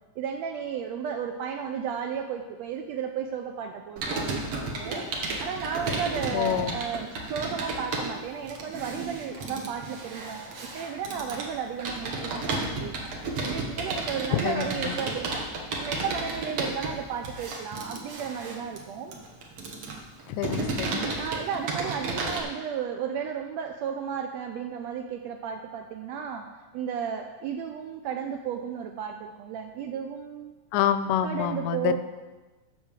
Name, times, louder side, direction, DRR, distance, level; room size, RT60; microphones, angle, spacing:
voice 1, 0.2-5.0 5.4-10.4 10.7-12.9 13.4-15.5 15.8-19.1 20.9-26.4 26.7-30.5 31.2-32.0, right 7 dB, 80° right, 5 dB, 1.6 m, -33 dB
Computer keyboard, 4.0-22.4, right 2 dB, 55° right, 1.9 m, -33 dB
voice 2, 6.3-6.8 14.3-15.0 20.3-21.1 30.7-32.0, left 10 dB, 80° left, 12 dB, 1.9 m, -27 dB
8.5 x 6.1 x 7.3 m, 1.2 s
omnidirectional pair, 3.5 m